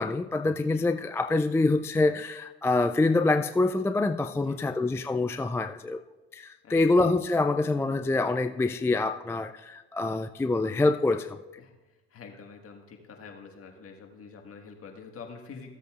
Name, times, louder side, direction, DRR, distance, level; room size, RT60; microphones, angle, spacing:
voice 1, 0.0-6.0 6.3-11.4, left 2 dB, 10° left, 8 dB, 0.3 m, -26 dB
voice 2, 4.3-4.7 6.6-6.9 11.6-11.8 12.1-15.7, left 5 dB, 45° left, 2 dB, 1.7 m, -46 dB
15.5 x 8.0 x 2.4 m, 1.1 s
supercardioid pair, 70°, 30 cm